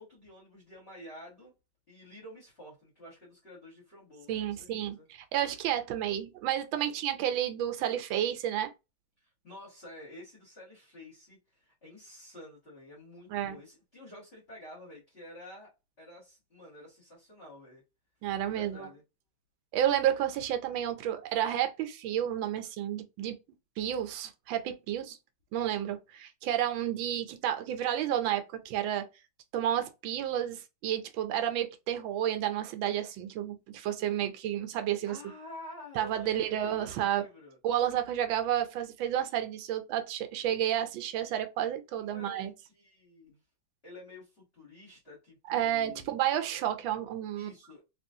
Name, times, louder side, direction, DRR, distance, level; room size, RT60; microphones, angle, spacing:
voice 1, 0.0-1.5 1.9-5.1 9.2-15.7 16.0-17.8 18.5-19.0 35.1-37.6 41.9-43.4 43.8-46.2 47.3-47.8, left 1 dB, 35° left, 1.4 m, -50 dB
voice 2, 4.3-8.7 13.3-13.6 18.2-18.9 19.7-23.4 23.8-25.2 25.5-29.0 29.5-35.2 36.0-37.2 37.6-42.5 45.5-47.5, right 11 dB, 80° right, 1.3 m, -31 dB
3.0 x 3.0 x 2.6 m
omnidirectional pair, 2.2 m